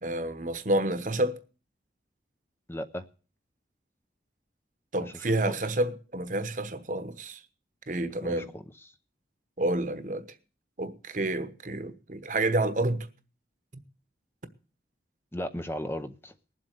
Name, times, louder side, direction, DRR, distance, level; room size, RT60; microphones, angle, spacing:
voice 1, 0.0-1.4 4.9-7.4 7.9-8.5 9.6-10.2 10.8-13.1 13.7-13.8, right 1 dB, 45° right, 1.1 m, -29 dB
voice 2, 2.7-3.1 5.0-5.6 8.0-8.9 15.3-16.3, equal, 15° left, 0.6 m, -37 dB
19.5 x 7.6 x 6.6 m
head